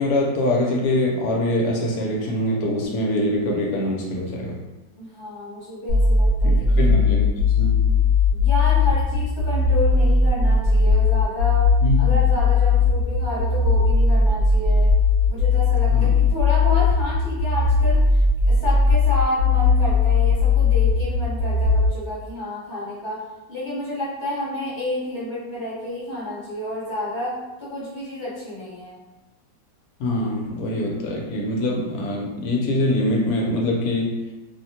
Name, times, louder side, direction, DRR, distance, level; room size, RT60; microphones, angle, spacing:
voice 1, 0.0-4.6 6.4-7.7 11.8-12.0 15.9-16.1 30.0-34.1, left 1 dB, 70° left, -1 dB, 1.0 m, -23 dB
voice 2, 5.0-6.7 8.3-11.7 12.0-14.9 15.3-23.2 23.5-29.0, left 1 dB, 25° left, -8 dB, 0.7 m, -30 dB
sound 1, 5.9-21.9, left 4 dB, 80° right, 1.3 m, -18 dB
2.8 x 2.1 x 2.7 m, 1.0 s
omnidirectional pair, 1.8 m